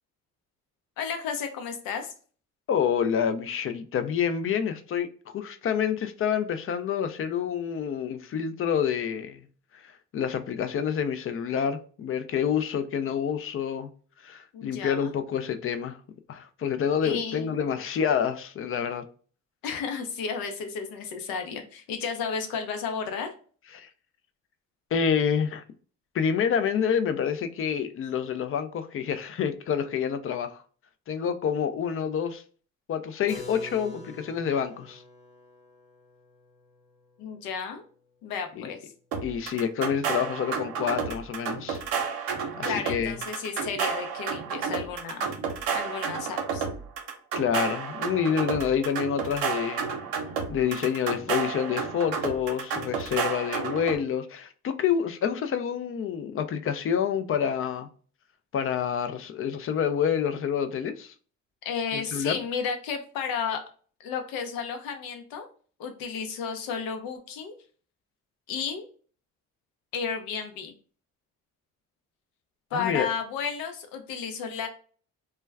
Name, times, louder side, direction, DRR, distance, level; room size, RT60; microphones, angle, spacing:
voice 1, 1.0-2.1 14.5-15.1 17.0-17.5 19.6-23.3 37.2-37.8 38.2-38.8 42.6-45.3 45.7-46.7 61.6-63.6 64.0-65.5 65.8-67.6 68.5-68.9 69.9-70.7 72.7-74.7, left 6 dB, 80° left, 0.7 m, -33 dB
voice 2, 2.7-9.4 9.7-13.9 14.2-16.0 16.3-19.0 23.7-23.9 24.9-25.6 26.1-30.6 31.1-32.4 32.9-35.0 38.6-38.7 39.2-41.8 42.6-43.2 47.4-49.9 50.5-57.9 58.5-61.1 61.9-62.4 72.7-73.1, left 8 dB, 40° left, 0.4 m, -28 dB
Keyboard (musical), 33.3-38.9, left 2 dB, 20° left, 1.0 m, -48 dB
sound 1, 39.1-54.0, right 6 dB, 85° right, 0.7 m, -31 dB
2.2 x 2.2 x 3.3 m
supercardioid pair, 75°, 34 cm